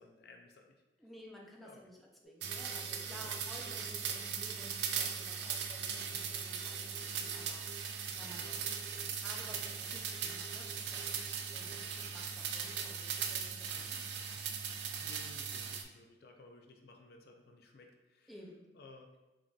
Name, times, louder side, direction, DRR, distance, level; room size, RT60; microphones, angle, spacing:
voice 1, 0.0-0.8 1.6-1.8 3.1-3.4 15.0-18.3 18.7-19.1, left 3 dB, 60° left, 3 dB, 0.4 m, -57 dB
voice 2, 1.0-14.1 18.3-18.7, equal, ahead, -2 dB, 0.4 m, -54 dB
sound 1, 2.2-7.8 8.4-13.0, right 3 dB, 20° left, 0.8 m, -57 dB
sound 2, 2.4-15.8, right 7 dB, 70° right, 0.4 m, -39 dB
3.8 x 3.5 x 2.3 m, 1.0 s
head